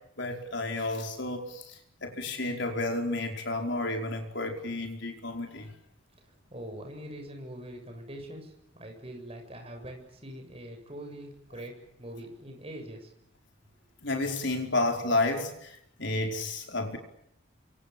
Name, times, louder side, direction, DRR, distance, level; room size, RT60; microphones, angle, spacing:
voice 1, 0.2-5.7 14.0-17.0, left 2 dB, 55° left, 4 dB, 5.1 m, -31 dB
voice 2, 6.5-13.1, right 1 dB, 30° right, 4 dB, 7.7 m, -43 dB
28.0 x 25.5 x 7.3 m, 0.77 s
head